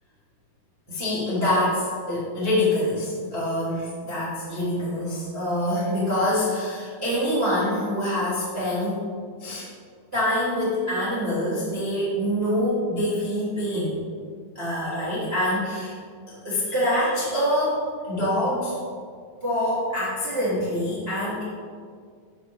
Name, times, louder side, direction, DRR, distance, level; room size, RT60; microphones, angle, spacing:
voice 1, 0.9-9.0 9.4-9.7 10.1-14.0 14.5-15.9 16.3-18.8 19.4-21.4, left 1 dB, 55° right, -9 dB, 0.6 m, -25 dB
9.5 x 6.4 x 3.2 m, 2.1 s
omnidirectional pair, 4.3 m